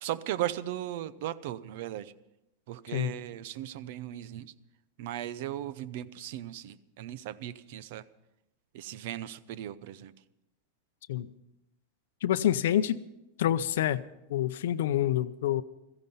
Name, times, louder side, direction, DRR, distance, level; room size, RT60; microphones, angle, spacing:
voice 1, 0.0-2.1 2.7-4.5 5.0-8.0 8.7-10.1, right 12 dB, 50° right, 17 dB, 0.7 m, -37 dB
voice 2, 12.2-13.0 13.4-14.0 14.3-15.6, left 11 dB, 75° left, 11 dB, 0.6 m, -27 dB
16.0 x 15.0 x 5.6 m, 0.90 s
supercardioid pair, 175°, 0 cm